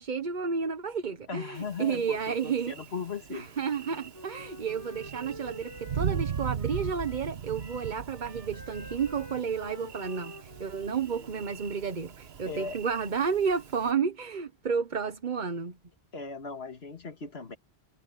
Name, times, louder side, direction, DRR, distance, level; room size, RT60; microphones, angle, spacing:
voice 1, 0.0-2.7 3.3-15.8, right 6 dB, 50° right, 1.1 m, -31 dB
voice 2, 1.3-3.5 12.4-12.8 16.1-17.6, left 5 dB, 80° left, 2.2 m, -38 dB
Thunder, 1.6-13.9, right 8 dB, 75° right, 1.3 m, -39 dB
Wind instrument woodwind instrument, 3.7-7.3 7.6-11.5, equal, 20° left, 5.6 m, -48 dB
omnidirectional pair, 1.0 m